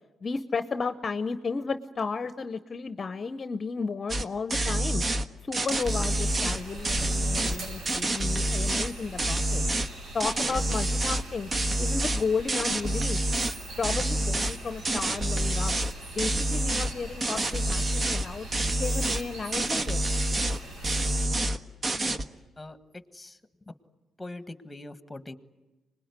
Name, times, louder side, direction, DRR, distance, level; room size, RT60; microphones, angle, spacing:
voice 1, 0.2-5.0 5.4-9.6 10.1-11.5 11.8-13.2 13.8-15.7 16.2-18.5 18.8-20.0, left 4 dB, 35° left, 10 dB, 0.9 m, -33 dB
sound 1, 4.1-4.2 4.5-5.2 5.5-7.6 7.9-8.9 9.2-9.9 10.2-11.2 11.5-13.6 13.8-14.6 14.8-15.9 16.2-16.9 17.2-18.3 18.5-19.2 19.5-20.6 20.8-21.6 21.8-22.2, right 1 dB, 35° right, 1.4 m, -27 dB
sound 2, 5.7-21.3, right 2 dB, 70° right, 7.4 m, -42 dB
voice 2, 22.6-23.4 24.2-25.3, left 2 dB, 15° left, 11 dB, 1.6 m, -43 dB
26.0 x 20.5 x 9.7 m, 1.2 s
cardioid pair, 90°, 0 cm